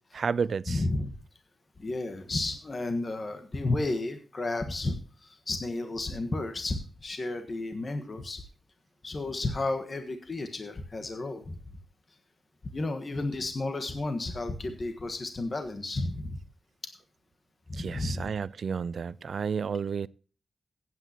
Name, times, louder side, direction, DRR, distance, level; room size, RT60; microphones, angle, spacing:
voice 1, 0.1-0.8 17.7-20.1, right 6 dB, 65° right, 0.4 m, -31 dB
voice 2, 0.7-1.1 1.8-8.4 9.0-11.5 12.6-16.4 17.7-18.3, left 2 dB, 40° left, 1.5 m, -32 dB
16.5 x 9.2 x 2.9 m
wide cardioid pair, 95°, 0 cm